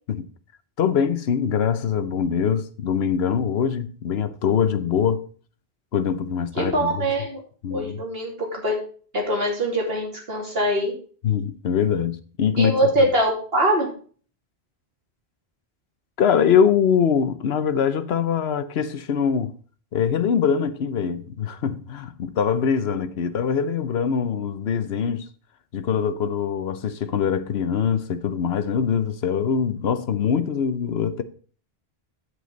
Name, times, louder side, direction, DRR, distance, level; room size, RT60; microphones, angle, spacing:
voice 1, 0.8-5.3 5.9-7.1 7.6-8.0 11.2-12.7 13.0-13.1 16.2-19.5 19.9-25.3 25.7-31.2, left 7 dB, 80° left, 1.0 m, -23 dB
voice 2, 6.6-7.4 7.7-8.8 9.1-10.9 12.6-13.9, right 1 dB, 65° right, 3.0 m, -23 dB
8.1 x 7.9 x 3.9 m
omnidirectional pair, 1.1 m